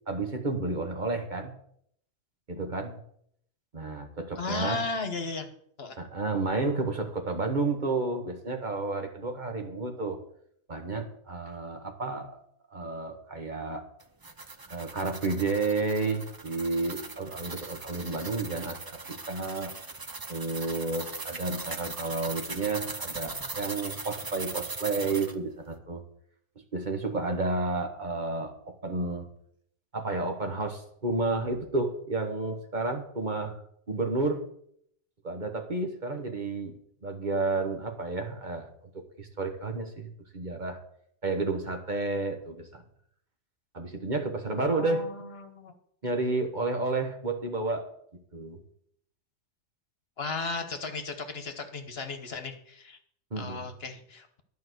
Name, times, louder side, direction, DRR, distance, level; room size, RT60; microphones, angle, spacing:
voice 1, 0.1-1.5 2.5-3.0 3.7-4.8 6.0-10.2 10.7-12.4 12.7-13.9 14.7-19.7 20.3-26.0 26.7-29.3 29.9-33.6 33.9-34.4 35.2-36.7 37.0-40.8 41.2-42.8 43.7-45.1 46.0-47.9 48.3-48.6 53.3-53.7, right 3 dB, 40° right, 5 dB, 1.4 m, -31 dB
voice 2, 4.4-5.5 5.8-5.9 44.6-45.7 50.2-53.0 53.4-54.3, left 3 dB, 60° left, 7 dB, 1.4 m, -35 dB
sound 1, 14.0-25.4, right 3 dB, 25° right, 0.5 m, -40 dB
11.5 x 5.4 x 7.9 m, 0.68 s
omnidirectional pair, 1.2 m